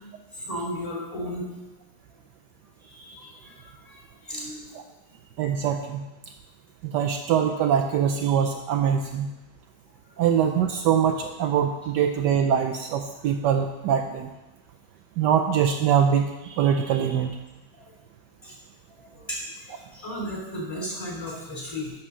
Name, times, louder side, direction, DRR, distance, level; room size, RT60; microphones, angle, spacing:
voice 1, 0.3-1.5 2.8-4.6 17.7-17.8 18.4-18.5 18.9-21.9, equal, 15° left, -3 dB, 3.1 m, -35 dB
voice 2, 5.4-6.0 6.8-9.3 10.2-14.3 15.2-17.3, right 8 dB, 75° right, 5 dB, 1.1 m, -23 dB
10.5 x 4.5 x 6.2 m, 1.0 s
omnidirectional pair, 2.0 m